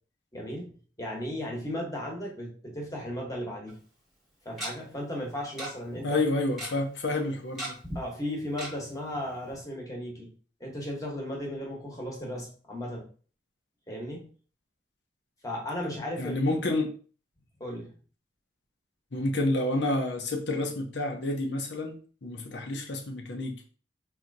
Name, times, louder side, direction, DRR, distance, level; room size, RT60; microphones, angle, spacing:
voice 1, 0.3-0.7 1.0-3.8 4.4-6.2 7.9-10.3 10.6-13.1 13.9-14.3 15.4-16.4 17.6-17.9, left 1 dB, 20° left, -1 dB, 1.1 m, -35 dB
Tick-tock, 3.7-3.8 4.6-4.7 5.6-5.7 6.0-6.1 6.3-6.7 7.6-8.0 8.6-8.7 9.1-9.2 9.5-9.6, right 1 dB, ahead, 1.2 m, -35 dB
voice 2, 6.0-7.8 16.2-16.9 19.1-23.6, left 2 dB, 85° left, 3 dB, 0.7 m, -29 dB
4.3 x 2.7 x 2.6 m, 0.40 s
head